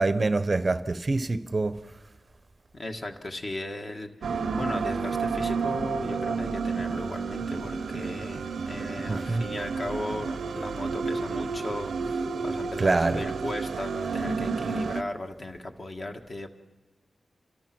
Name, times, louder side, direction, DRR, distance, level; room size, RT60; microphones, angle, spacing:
voice 1, 0.0-1.8 9.1-9.4 12.8-13.2, right 3 dB, 30° right, 0.7 m, -25 dB
voice 2, 2.7-16.5, left 1 dB, 35° left, 1.7 m, -36 dB
sound 1, 4.2-15.0, right 5 dB, 90° right, 0.7 m, -31 dB
28.5 x 25.5 x 6.1 m
wide cardioid pair, 145°, 0 cm